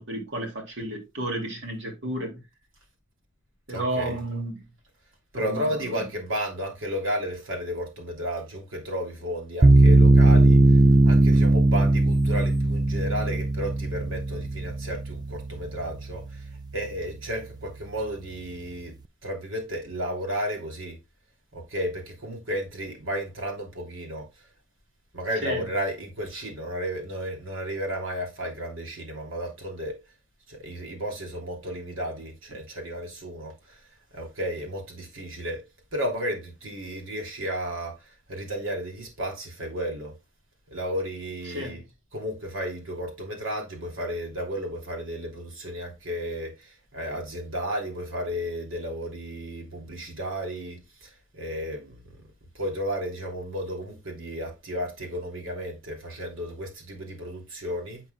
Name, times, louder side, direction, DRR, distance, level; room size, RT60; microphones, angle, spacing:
voice 1, 0.0-2.4 3.7-4.6 5.3-6.0 25.4-25.6 41.5-41.8, right 1 dB, 60° right, 2.5 m, -32 dB
voice 2, 3.7-4.2 5.3-19.0 19.2-21.0 21.5-24.3 25.1-29.9 30.5-33.8 34.1-40.1 40.7-41.8 42.1-52.2 52.5-58.0, equal, 80° right, 2.9 m, -33 dB
sound 1, 9.6-16.7, right 2 dB, 20° right, 0.3 m, -19 dB
8.0 x 6.3 x 2.3 m
head